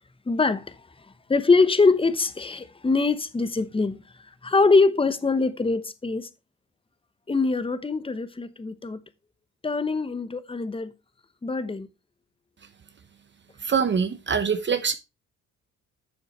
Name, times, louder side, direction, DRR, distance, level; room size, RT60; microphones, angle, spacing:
voice 1, 0.3-0.8 1.3-4.0 4.4-6.3 7.3-9.0 9.6-10.9 11.4-11.9, left 3 dB, 20° left, 1.0 m, -23 dB
voice 2, 13.6-14.9, right 6 dB, 40° right, 1.0 m, -24 dB
9.7 x 6.8 x 3.1 m
cardioid pair, 90°, 30 cm